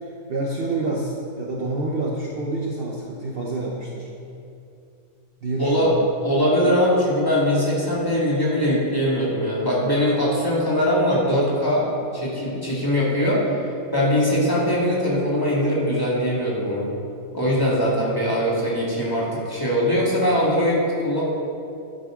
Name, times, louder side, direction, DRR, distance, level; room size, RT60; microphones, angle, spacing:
voice 1, 0.0-4.1 5.4-6.0, right 2 dB, 45° right, -3 dB, 1.1 m, -28 dB
voice 2, 5.6-5.9 6.2-11.9 12.1-13.4 13.9-16.9 17.3-21.2, equal, 15° left, -7 dB, 2.2 m, -21 dB
10.5 x 9.6 x 3.8 m, 2.6 s
omnidirectional pair, 1.5 m